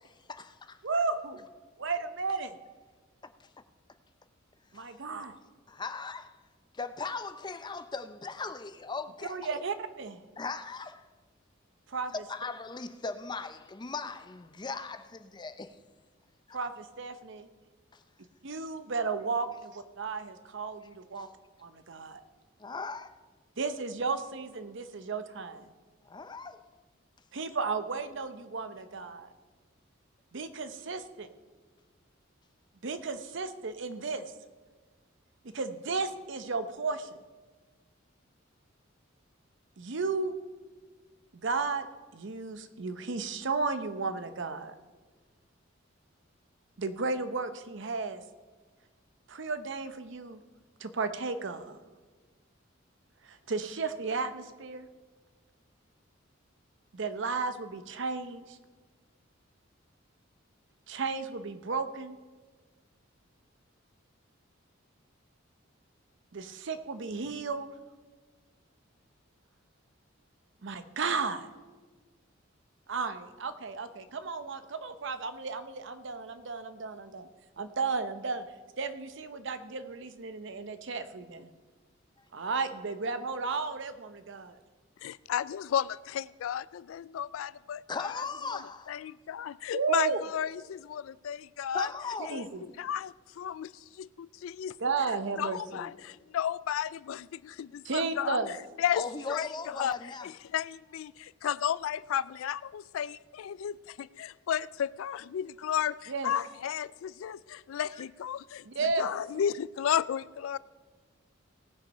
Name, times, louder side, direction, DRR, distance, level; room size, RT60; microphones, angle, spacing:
voice 1, 0.3-0.8 4.7-4.8 5.7-6.3 6.8-9.6 10.4-11.0 12.3-15.7 16.5-16.6 22.6-23.1 26.1-26.6 87.9-89.0 91.7-92.5 95.8-95.9 98.9-100.3, left 4 dB, 20° left, 0.5 m, -38 dB
voice 2, 0.8-1.4 1.8-2.5 4.7-5.3 9.2-10.2 11.9-12.1 16.5-17.5 18.4-21.3 21.6-22.2 23.6-25.7 27.3-29.3 30.3-31.3 32.8-34.2 35.4-37.1 39.8-40.3 41.3-41.9 42.1-44.7 46.8-48.2 49.3-50.4 50.8-51.8 53.3-54.9 56.9-58.6 60.9-62.2 66.3-67.7 70.6-71.5 72.9-77.3 77.6-78.4 78.8-81.5 82.3-84.6 89.7-90.2 92.3-92.6 94.8-95.8 97.8-98.5 106.1-106.3 108.7-109.1, right 4 dB, 65° right, 0.7 m, -34 dB
voice 3, 85.0-88.2 88.9-91.9 92.3-92.4 92.8-93.7 94.0-94.7 95.4-98.4 98.8-100.0 100.2-110.6, left 9 dB, 85° left, 0.3 m, -33 dB
18.0 x 6.1 x 5.5 m
head